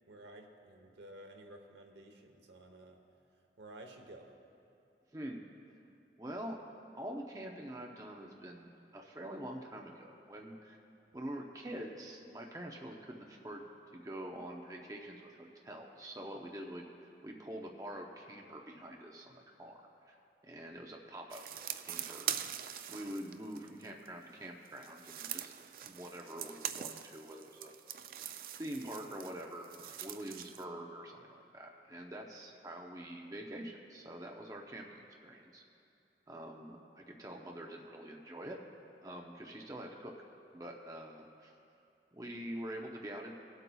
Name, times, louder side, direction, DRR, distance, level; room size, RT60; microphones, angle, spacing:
voice 1, 0.1-3.0 3.6-4.3, right 1 dB, 85° right, 3 dB, 1.0 m, -53 dB
voice 2, 5.1-5.4 6.2-6.6 6.9-10.8 11.1-13.6 13.9-16.8 17.2-19.8 20.1-20.2 20.4-21.4 21.9-25.5 25.8-27.7 28.6-35.6 36.3-38.6 39.0-40.1 40.5-41.5 42.1-43.3, right 1 dB, 20° right, 0 dB, 0.6 m, -45 dB
sound 1, 21.3-24.1 24.7-30.6, right 10 dB, 55° right, 0.3 m, -43 dB
20.5 x 8.0 x 2.3 m, 2.7 s
head